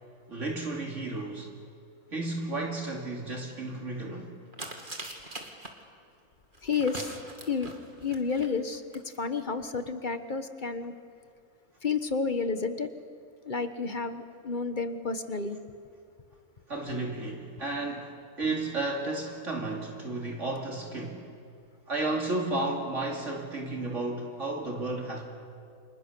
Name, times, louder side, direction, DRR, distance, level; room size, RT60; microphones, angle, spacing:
voice 1, 0.3-1.5 2.1-4.4 16.7-21.2 21.9-25.2, right 2 dB, 55° right, 0 dB, 2.9 m, -33 dB
sound 1, 4.5-5.7 6.5-8.5 8.9-9.0 9.2-9.3, right 2 dB, 35° right, 2.5 m, -41 dB
voice 2, 6.6-7.1 7.5-7.7 8.0-8.8 9.2-10.9 11.8-12.9 13.5-15.6, left 5 dB, 35° left, 9 dB, 1.3 m, -30 dB
29.5 x 26.5 x 6.9 m, 2.2 s
omnidirectional pair, 1.5 m